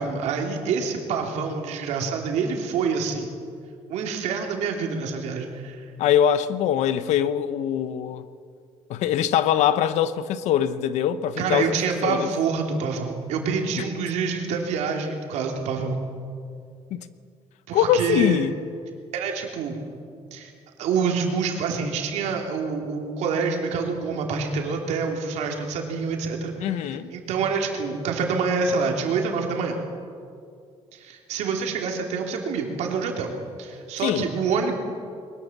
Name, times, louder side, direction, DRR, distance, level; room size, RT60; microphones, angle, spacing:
voice 1, 0.0-3.3 3.9-5.8 11.4-16.0 17.7-18.4 19.1-19.8 20.3-20.5 20.8-29.8 30.9-33.3 33.6-34.8, right 5 dB, 80° right, 3.3 m, -27 dB
voice 2, 6.0-8.3 8.9-11.8 12.0-12.3 16.9-17.1 17.7-18.5 26.6-27.1 34.0-34.3, left 10 dB, 85° left, 1.1 m, -22 dB
22.0 x 20.0 x 7.4 m
cardioid pair, 135°, 12 cm